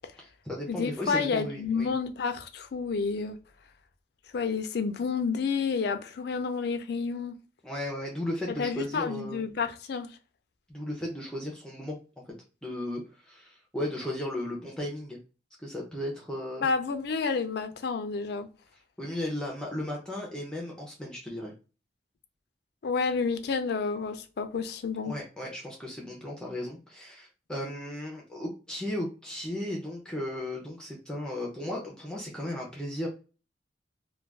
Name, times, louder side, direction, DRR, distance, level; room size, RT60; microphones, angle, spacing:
voice 1, 0.2-1.9 7.6-9.4 10.7-12.0 12.6-15.2 15.6-16.7 19.0-21.5 25.0-33.1, left 1 dB, 5° left, 0.5 m, -35 dB
voice 2, 0.7-3.4 4.3-7.3 8.6-10.1 16.6-18.5 22.8-25.1, left 5 dB, 65° left, 0.4 m, -30 dB
2.3 x 2.2 x 3.3 m
head